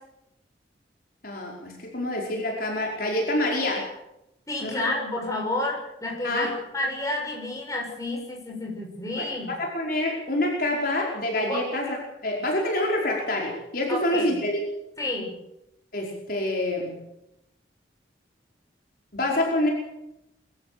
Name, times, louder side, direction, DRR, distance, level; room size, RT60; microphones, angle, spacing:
voice 1, 1.2-3.8 4.6-4.8 6.2-6.5 9.2-9.3 9.6-12.0 12.2-14.6 15.9-16.9 19.1-19.7, left 1 dB, 50° left, -2 dB, 5.0 m, -26 dB
voice 2, 4.5-9.5 11.5-11.6 13.9-14.4 15.0-15.4, left 2 dB, 15° left, -1 dB, 7.0 m, -30 dB
25.0 x 14.5 x 8.4 m, 0.88 s
head